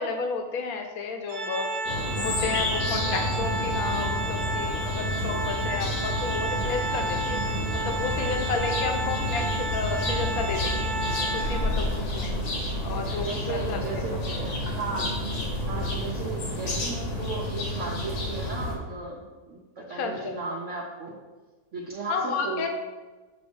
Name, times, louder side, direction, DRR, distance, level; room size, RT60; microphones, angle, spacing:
voice 1, 0.0-1.7 2.2-7.4 7.8-10.9 11.3-12.4 12.8-14.0 19.9-20.3 22.1-22.7, left 5 dB, 70° left, 4 dB, 1.2 m, -32 dB
Organ, 1.3-12.0, right 2 dB, 80° right, 1.2 m, -32 dB
sound 1, 1.9-18.8, left 1 dB, 90° left, 1.6 m, -30 dB
voice 2, 13.2-15.0 15.7-21.2 21.7-22.7, right 3 dB, 60° right, -3 dB, 1.0 m, -35 dB
7.0 x 2.6 x 5.2 m, 1.3 s
omnidirectional pair, 1.6 m